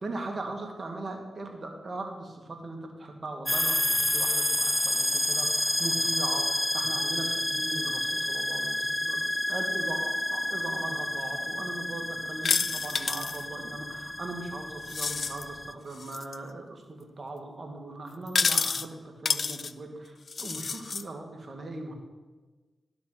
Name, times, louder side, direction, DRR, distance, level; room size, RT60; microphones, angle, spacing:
voice 1, 0.0-9.2 9.5-21.9, right 2 dB, 50° right, 2 dB, 2.2 m, -39 dB
sound 1, 3.5-15.7, left 1 dB, 10° left, 0.6 m, -29 dB
sound 2, 12.4-13.4 14.8-15.4 16.0-16.4 18.3-18.8 19.2-19.7 20.3-21.0, left 5 dB, 60° left, 0.4 m, -29 dB
12.0 x 6.0 x 5.9 m, 1.3 s
cardioid pair, 45°, 0 cm